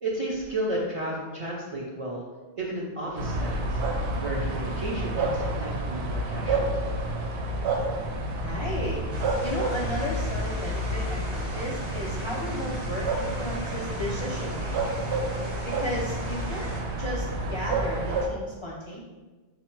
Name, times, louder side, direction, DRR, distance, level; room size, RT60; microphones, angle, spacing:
voice 1, 0.0-2.2 2.6-3.8 4.2-6.8, right 1 dB, 45° right, -4 dB, 0.5 m, -32 dB
sound 1, 3.2-18.3, right 2 dB, 85° right, 0.9 m, -29 dB
voice 2, 8.3-9.0 9.4-15.0 15.6-16.7 17.0-19.0, left 1 dB, 40° left, -5 dB, 0.4 m, -34 dB
sound 2, 9.1-16.8, equal, 25° right, 0.9 m, -40 dB
4.0 x 2.1 x 4.4 m, 1.2 s
omnidirectional pair, 1.1 m